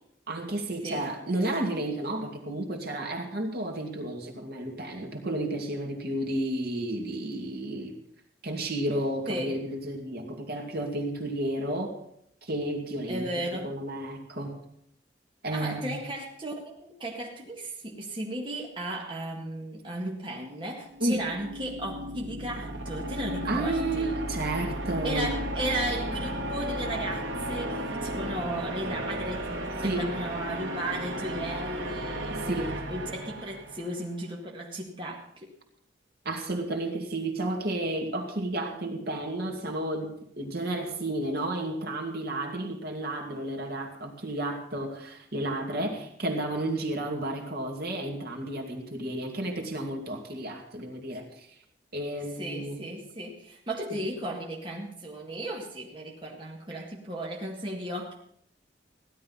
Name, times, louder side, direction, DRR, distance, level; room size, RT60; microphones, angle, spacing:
voice 1, 0.3-8.0 8.4-12.0 12.4-13.3 13.6-14.6 15.4-15.9 21.0-21.2 23.5-25.3 29.8-30.1 32.3-32.7 36.2-51.5 51.9-52.8 53.9-54.0 56.7-56.8, right 1 dB, 55° right, 2 dB, 2.4 m, -32 dB
voice 2, 9.3-9.6 13.1-13.7 15.5-24.2 25.0-35.5 52.4-58.1, right 1 dB, 30° right, -2 dB, 2.0 m, -35 dB
sound 1, 20.9-34.0, equal, 85° right, 1.8 m, -34 dB
16.0 x 11.5 x 5.6 m, 0.69 s
head